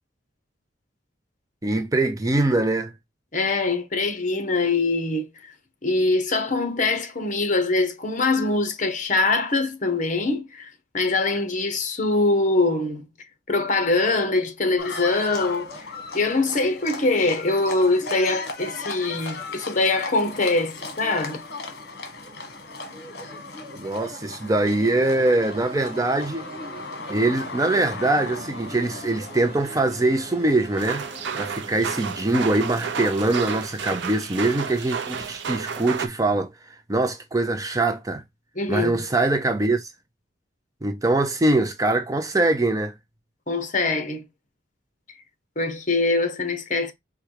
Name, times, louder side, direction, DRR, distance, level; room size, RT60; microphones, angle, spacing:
voice 1, 1.6-2.9 23.8-26.4 27.1-31.0 31.3-36.5 36.9-38.2 38.7-39.9 40.8-42.9, right 2 dB, 20° right, 0.4 m, -23 dB
voice 2, 3.3-5.5 5.8-13.1 13.5-15.9 16.1-21.4 38.5-39.0 43.5-44.3 45.6-46.9, left 3 dB, 40° left, 0.9 m, -23 dB
Livestock farm animals working animals, 14.8-31.6, left 3 dB, 55° left, 1.3 m, -37 dB
sound 1, 24.8-33.5, right 2 dB, 35° right, 1.0 m, -44 dB
sound 2, 30.8-36.1, right 6 dB, 65° right, 0.6 m, -31 dB
4.7 x 2.2 x 4.6 m
head